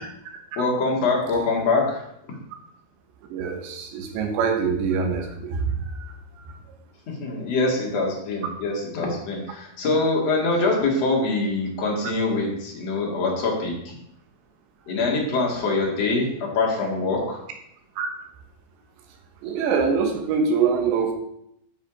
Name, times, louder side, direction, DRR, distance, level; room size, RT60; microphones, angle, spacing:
voice 1, 0.6-2.0 7.1-13.9 14.9-17.4, left 3 dB, 45° left, -2 dB, 2.4 m, -24 dB
voice 2, 3.3-5.7 18.0-18.1 19.4-21.1, right 5 dB, 80° right, 4 dB, 3.5 m, -24 dB
10.0 x 6.1 x 5.0 m, 0.76 s
omnidirectional pair, 5.2 m